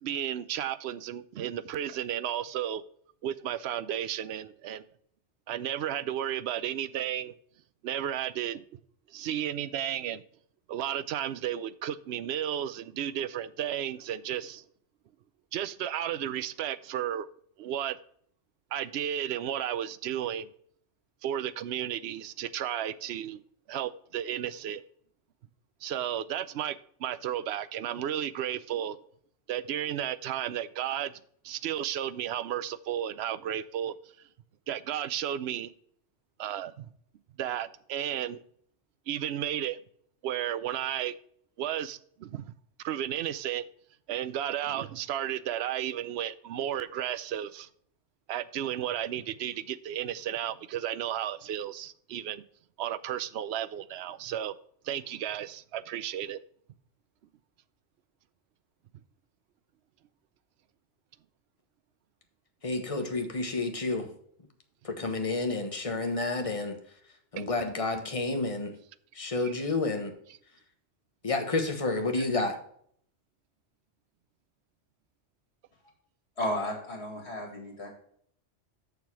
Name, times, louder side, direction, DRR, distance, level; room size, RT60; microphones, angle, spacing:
voice 1, 0.0-2.8 3.2-4.8 5.5-7.3 7.8-8.8 9.1-10.2 10.7-14.6 15.5-17.3 17.6-18.0 18.7-20.5 21.2-23.4 23.7-24.8 25.8-29.0 29.5-33.9 34.7-35.7 36.4-36.9 37.4-38.4 39.1-39.8 40.2-41.2 41.6-42.5 42.8-43.6 44.1-47.7 48.3-52.4 52.8-54.5 54.8-56.4 67.4-67.5 69.4-69.5 72.1-72.3, right 10 dB, 70° right, 0.8 m, -33 dB
voice 2, 62.6-64.1 64.8-66.8 67.3-68.8 69.1-70.1 71.2-72.6, left 3 dB, 30° left, 1.3 m, -30 dB
voice 3, 76.4-77.9, left 1 dB, 60° left, 2.5 m, -33 dB
6.7 x 6.7 x 4.7 m
omnidirectional pair, 1.2 m